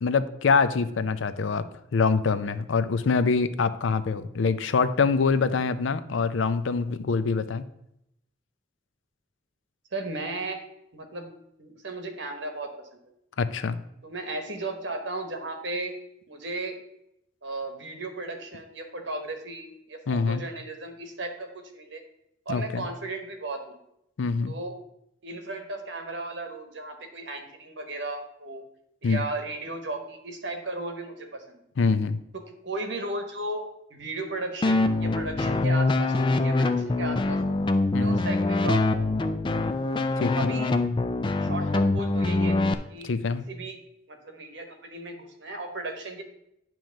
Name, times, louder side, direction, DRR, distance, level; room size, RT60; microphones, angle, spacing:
voice 1, 0.0-1.6 1.9-7.6 13.4-13.8 20.1-20.4 22.5-22.8 24.2-24.5 29.0-29.2 31.8-32.2 37.9-38.2 40.2-40.5 43.0-43.5, left 4 dB, 85° left, 13 dB, 0.5 m, -25 dB
voice 2, 9.9-10.6 10.9-11.3 11.6-13.0 14.0-15.9 16.3-16.8 17.4-22.0 22.4-23.8 24.5-24.7 25.2-28.6 29.0-31.6 32.3-33.6 33.9-37.6 38.0-39.3 40.2-40.7 41.4-42.6 42.9-43.1 43.5-43.8 44.1-46.2, right 2 dB, 70° right, 5 dB, 1.2 m, -35 dB
sound 1, 34.6-42.7, left 2 dB, 25° left, 0.3 m, -24 dB
9.0 x 3.1 x 6.3 m, 0.80 s
head